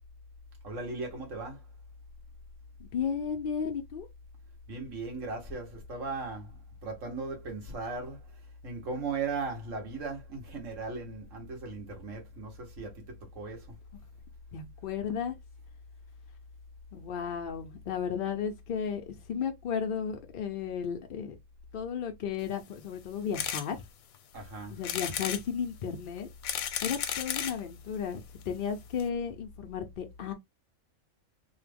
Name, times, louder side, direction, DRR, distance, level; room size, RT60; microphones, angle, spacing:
voice 1, 0.6-1.6 4.7-8.2 8.6-13.7 24.3-24.8, right 3 dB, 70° right, 1.4 m, -37 dB
voice 2, 2.8-4.1 14.5-15.3 16.9-21.4 21.7-23.8 24.7-26.3 26.8-30.3, left 7 dB, 65° left, 0.5 m, -34 dB
sound 1, 23.3-23.7 24.1-24.2 24.8-25.4 26.2-27.6 28.4-28.5 28.7-28.8 29.0-29.1, left 9 dB, 85° left, 1.0 m, -33 dB
3.1 x 2.1 x 3.3 m
omnidirectional pair, 1.4 m